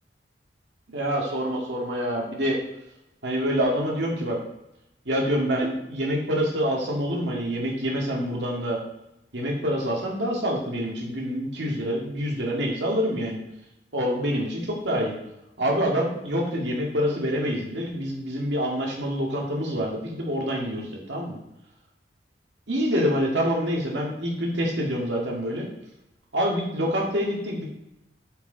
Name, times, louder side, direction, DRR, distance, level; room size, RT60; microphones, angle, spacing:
voice 1, 0.9-2.6 3.2-4.4 5.1-8.8 9.3-13.4 13.9-15.2 15.6-21.4 22.7-25.7 26.3-27.6, equal, 80° right, -1 dB, 2.0 m, -26 dB
8.4 x 4.8 x 4.0 m, 0.85 s
head